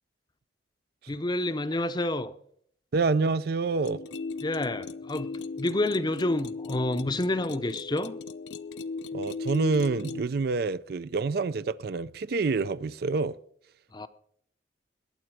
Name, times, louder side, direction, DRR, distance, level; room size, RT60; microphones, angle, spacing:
voice 1, 1.1-2.3 4.4-8.2 13.9-14.1, left 1 dB, 25° left, 0.6 m, -29 dB
voice 2, 2.9-4.0 9.1-13.4, right 4 dB, 60° right, 0.4 m, -27 dB
sound 1, 3.8-10.2, left 4 dB, 80° left, 0.6 m, -37 dB
21.0 x 7.8 x 4.7 m
head